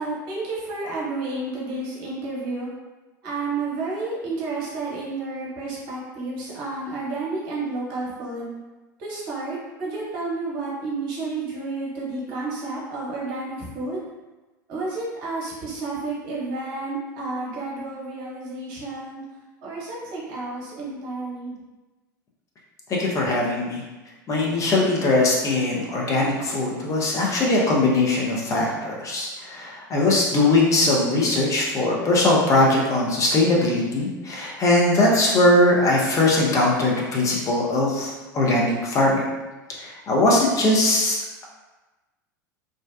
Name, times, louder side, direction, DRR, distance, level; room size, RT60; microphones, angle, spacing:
voice 1, 0.0-2.7 3.2-8.5 9.0-14.0 14.7-19.2 19.6-21.5, right 3 dB, 50° right, -5 dB, 0.9 m, -31 dB
voice 2, 22.9-23.8 24.3-39.2 39.8-41.2, left 2 dB, 30° left, -3 dB, 0.7 m, -20 dB
2.6 x 2.1 x 2.2 m, 1.2 s
figure-of-eight pair, 75°, 11 cm